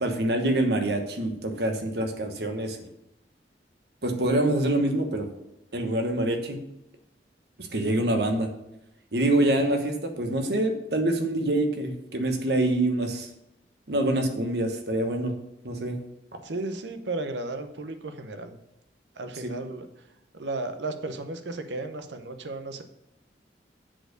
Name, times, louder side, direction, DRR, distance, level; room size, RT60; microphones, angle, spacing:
voice 1, 0.0-2.8 4.0-5.3 5.7-6.6 7.6-8.5 9.1-13.3 13.9-15.3 15.6-16.0 19.4-19.5, right 1 dB, 65° right, 5 dB, 1.2 m, -25 dB
voice 2, 16.4-18.6 19.2-19.9 20.3-22.8, right 2 dB, 85° right, 8 dB, 0.8 m, -34 dB
7.6 x 4.4 x 6.5 m, 0.86 s
head